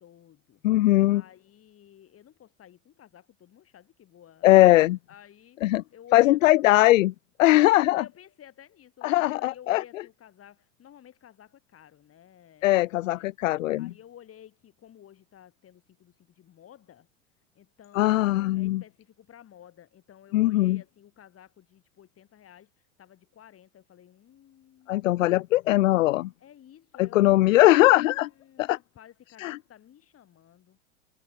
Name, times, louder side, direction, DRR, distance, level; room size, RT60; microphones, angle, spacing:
voice 1, 0.0-0.6 1.1-4.8 5.1-6.4 7.7-13.3 13.8-17.1 17.5-22.7 23.0-25.1 26.4-27.9 28.3-30.8, left 10 dB, 35° left, 6.4 m, -53 dB
voice 2, 0.6-1.2 4.4-5.0 5.6-5.8 6.1-7.1 7.4-8.0 9.0-9.8 12.6-13.9 17.9-18.8 20.3-20.8 24.9-26.3 27.0-28.3 28.6-28.8 29.4-29.6, left 17 dB, 65° left, 1.1 m, -20 dB
hypercardioid pair, 85°, 41 cm